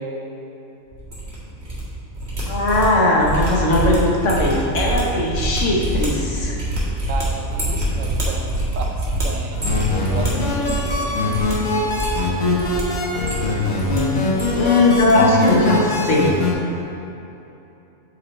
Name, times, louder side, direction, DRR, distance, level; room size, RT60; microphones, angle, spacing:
sound 1, 0.9-1.8 2.1-11.0 11.3-11.5 11.8-12.8 13.1-14.0 14.2-15.1 15.4-15.7 16.0-16.2, right 1 dB, 50° right, 2.1 m, -25 dB
voice 1, 2.5-6.6 10.3-10.5 13.5-16.4, left 2 dB, 65° left, -3 dB, 1.5 m, -19 dB
voice 2, 7.1-11.2, right 4 dB, 70° right, 2 dB, 1.0 m, -34 dB
sound 2, 9.5-16.5, left 2 dB, 80° left, 1.6 m, -22 dB
8.3 x 4.9 x 4.2 m, 2.9 s
omnidirectional pair, 1.4 m